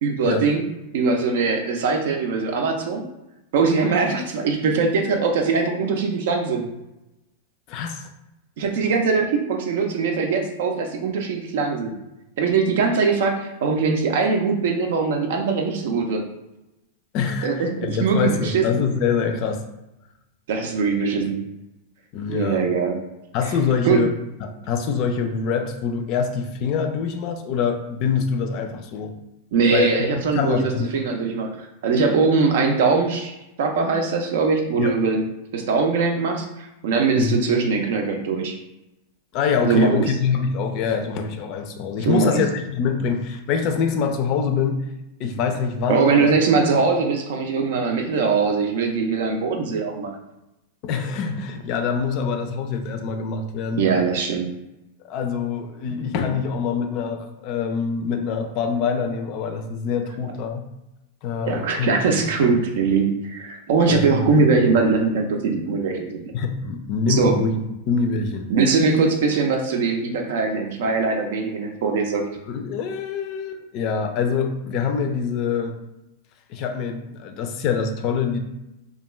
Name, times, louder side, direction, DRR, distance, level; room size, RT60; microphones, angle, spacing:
voice 1, 0.0-0.6 0.9-3.0 3.5-6.7 8.6-11.9 12.4-16.2 17.4-18.8 20.5-21.4 22.3-23.0 23.8-24.0 29.5-31.5 31.8-35.3 35.5-38.5 39.6-40.0 42.1-42.4 45.9-50.2 53.7-54.5 61.4-66.2 67.1-67.4 68.5-72.2, right 4 dB, 70° right, 3 dB, 0.5 m, -21 dB
voice 2, 7.7-8.0 17.1-19.6 22.1-22.6 23.3-24.1 24.4-29.1 29.7-30.9 34.8-35.0 37.2-37.5 39.3-44.8 45.2-46.3 46.8-46.9 50.8-53.9 55.0-60.7 61.2-61.9 63.9-64.3 64.7-64.8 66.3-67.6 67.9-68.5 72.4-75.7 76.5-78.4, left 5 dB, 50° left, 6 dB, 0.4 m, -25 dB
2.3 x 2.2 x 3.0 m, 0.92 s
hypercardioid pair, 115°, 0 cm